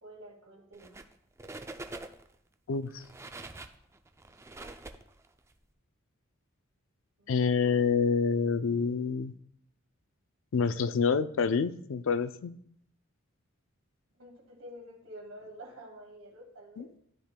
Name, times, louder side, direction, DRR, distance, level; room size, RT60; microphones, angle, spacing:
voice 1, 0.0-1.0 7.2-7.6 14.2-16.9, equal, 75° right, 1 dB, 1.9 m, -49 dB
sound 1, 0.7-1.1 1.4-2.3 2.9-5.5, right 2 dB, 15° right, 0.3 m, -45 dB
voice 2, 2.7-3.0 7.3-9.3 10.5-12.5 16.8-16.9, left 5 dB, 65° left, 13 dB, 0.4 m, -27 dB
13.0 x 5.1 x 2.2 m, 0.68 s
head